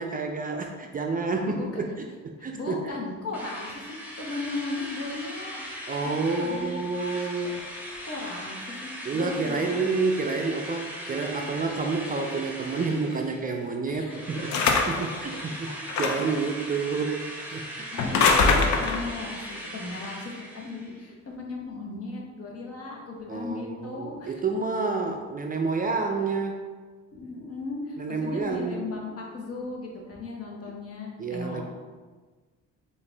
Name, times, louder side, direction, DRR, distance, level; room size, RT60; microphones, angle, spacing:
voice 1, 0.0-2.9 5.9-7.6 9.1-14.5 14.9-17.9 23.3-26.6 28.0-28.9 31.2-31.6, right 4 dB, 30° right, 2 dB, 0.4 m, -29 dB
voice 2, 1.5-1.8 2.5-6.8 8.0-9.8 11.1-11.5 13.9-14.3 17.9-24.4 27.1-31.6, left 3 dB, 50° left, -1 dB, 1.0 m, -36 dB
Drill, 3.3-13.7 14.1-21.0, equal, 5° right, 0.9 m, -39 dB
sound 1, 14.5-15.1 15.9-16.4 18.0-19.1, left 4 dB, 70° left, 0.6 m, -22 dB
4.7 x 2.6 x 3.3 m, 1.4 s
cardioid pair, 90°, 30 cm